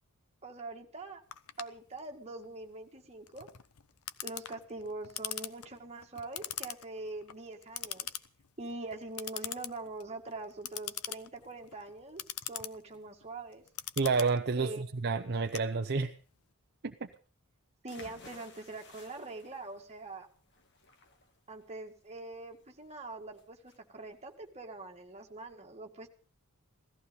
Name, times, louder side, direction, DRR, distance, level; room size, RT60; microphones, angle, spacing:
voice 1, 0.4-1.2 1.6-3.5 4.2-8.1 8.6-13.6 14.6-14.8 17.8-20.3 21.5-26.1, right 2 dB, 30° right, 2 dB, 2.1 m, -43 dB
Clock, 1.3-16.2, left 12 dB, 75° left, 0.8 m, -43 dB
voice 2, 14.0-16.1 16.8-17.1, right 4 dB, 50° right, 7 dB, 0.7 m, -30 dB
sound 1, 17.9-25.5, left 3 dB, 55° left, 2.3 m, -57 dB
17.0 x 14.0 x 5.4 m, 0.40 s
head